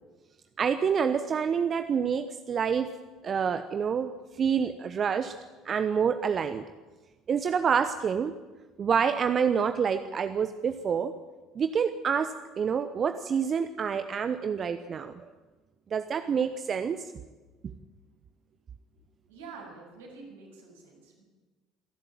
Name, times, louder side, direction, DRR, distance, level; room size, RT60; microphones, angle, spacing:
voice 1, 0.6-2.9 3.2-4.1 4.4-5.3 5.6-6.6 7.3-8.3 8.8-11.1 11.5-15.2 15.9-17.0, right 7 dB, 40° right, 10 dB, 1.0 m, -27 dB
voice 2, 19.3-21.2, right 4 dB, 75° right, -1 dB, 6.7 m, -47 dB
26.5 x 12.0 x 9.0 m, 1.3 s
figure-of-eight pair, 60°, 0 cm